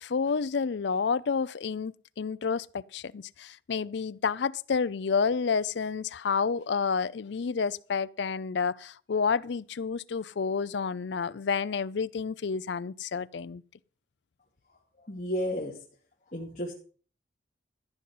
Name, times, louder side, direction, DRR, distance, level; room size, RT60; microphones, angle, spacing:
voice 1, 0.0-13.6, left 5 dB, 65° left, 0.4 m, -30 dB
voice 2, 15.1-15.8 16.3-16.7, equal, 40° left, 2.4 m, -32 dB
14.5 x 5.4 x 7.6 m
head